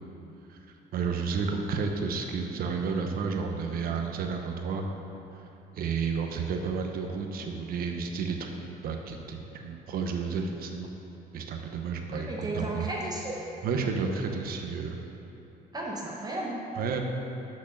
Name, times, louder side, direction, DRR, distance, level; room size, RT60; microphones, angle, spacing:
voice 1, 0.9-4.9 5.8-8.5 8.8-10.9 11.3-12.9 13.6-15.0 16.8-17.0, right 5 dB, 60° right, 3 dB, 0.9 m, -31 dB
voice 2, 12.1-13.4 15.7-16.6, right 1 dB, 25° right, -3 dB, 1.0 m, -34 dB
6.2 x 6.2 x 6.2 m, 2.9 s
cardioid pair, 110°, 17 cm